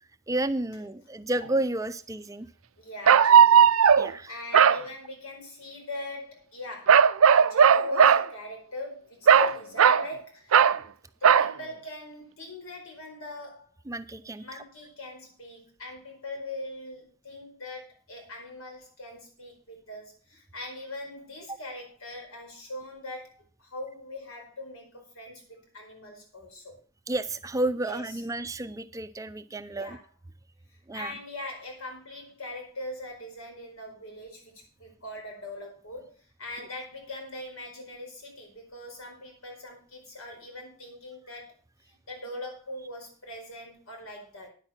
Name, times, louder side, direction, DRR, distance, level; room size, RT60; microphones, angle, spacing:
voice 1, 0.3-2.5 4.0-4.3 13.9-14.6 21.5-21.6 27.1-30.0 30.9-31.1, right 2 dB, 15° right, 12 dB, 0.4 m, -31 dB
sound 1, 1.4-1.5 3.1-4.1 4.5-4.8 6.9-8.3 9.3-10.1 10.5-10.8 11.2-11.5, right 7 dB, 80° right, 0.5 m, -17 dB
voice 2, 2.8-3.7 4.3-10.7 11.2-13.7 14.4-26.8 27.9-28.0 29.7-30.0 30.7-41.5 41.9-44.5, left 2 dB, 90° left, 1 dB, 4.7 m, -41 dB
9.8 x 8.8 x 5.7 m, 0.41 s
head